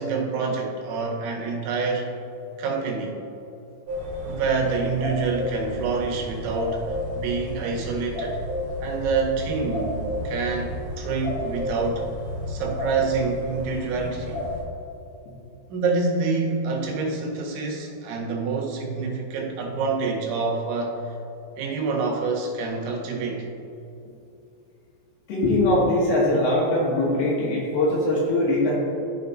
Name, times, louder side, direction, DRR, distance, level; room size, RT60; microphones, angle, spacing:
voice 1, 0.0-2.1 2.6-3.2 4.2-8.4 8.8-12.1 12.5-14.4 15.7-21.1 21.6-23.5, right 4 dB, 90° right, -1 dB, 3.4 m, -27 dB
sound 1, 3.9-14.6, left 1 dB, 60° right, 3.1 m, -32 dB
voice 2, 25.3-28.8, left 1 dB, 70° left, -5 dB, 2.6 m, -21 dB
14.0 x 4.9 x 2.6 m, 2.7 s
omnidirectional pair, 5.1 m